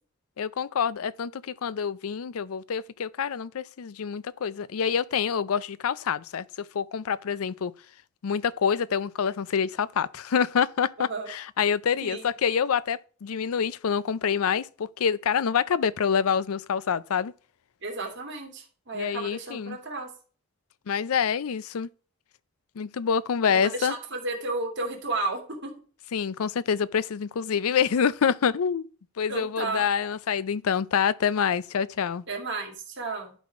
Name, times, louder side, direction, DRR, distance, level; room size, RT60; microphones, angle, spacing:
voice 1, 0.4-7.7 8.2-17.3 18.9-19.8 20.9-21.9 22.8-23.9 26.1-28.9 29.2-32.2, left 7 dB, 80° left, 0.5 m, -26 dB
voice 2, 11.0-11.3 12.0-12.2 17.8-20.1 23.5-25.7 29.3-29.9 32.3-33.3, right 3 dB, 55° right, 2.6 m, -33 dB
11.5 x 4.2 x 4.8 m
head